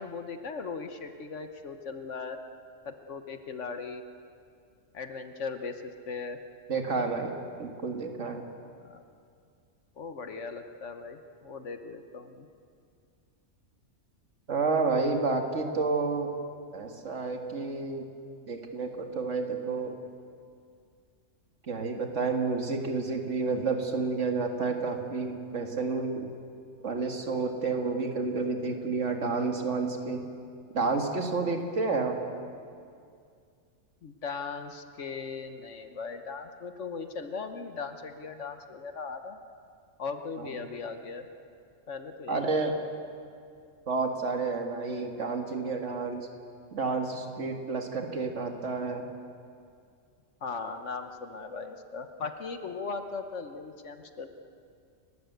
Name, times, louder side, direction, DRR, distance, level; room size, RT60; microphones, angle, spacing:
voice 1, 0.0-2.4 2.8-4.0 4.9-6.4 8.8-9.0 10.0-12.5 34.0-39.4 40.0-41.3 41.9-42.5 42.8-42.9 50.4-54.3, left 4 dB, 65° left, 8 dB, 1.4 m, -38 dB
voice 2, 6.7-8.4 14.5-16.3 16.7-18.1 18.5-20.0 21.6-26.3 26.8-30.3 30.7-32.2 40.4-40.5 42.3-42.7 43.9-46.3 46.7-49.0, right 4 dB, 65° right, 4 dB, 2.2 m, -30 dB
29.5 x 13.0 x 8.1 m, 2.3 s
omnidirectional pair, 1.3 m